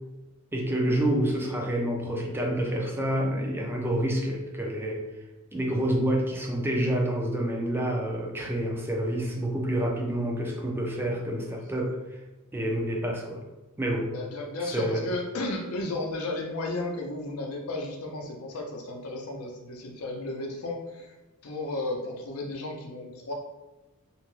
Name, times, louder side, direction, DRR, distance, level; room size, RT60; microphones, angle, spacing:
voice 1, 0.5-5.0 5.5-12.0 12.5-13.4 13.8-14.1 14.7-15.0, right 1 dB, 10° right, -1 dB, 0.4 m, -28 dB
voice 2, 14.1-21.2 21.4-23.3, left 2 dB, 75° left, 1 dB, 0.6 m, -33 dB
2.5 x 2.1 x 3.1 m, 1.1 s
head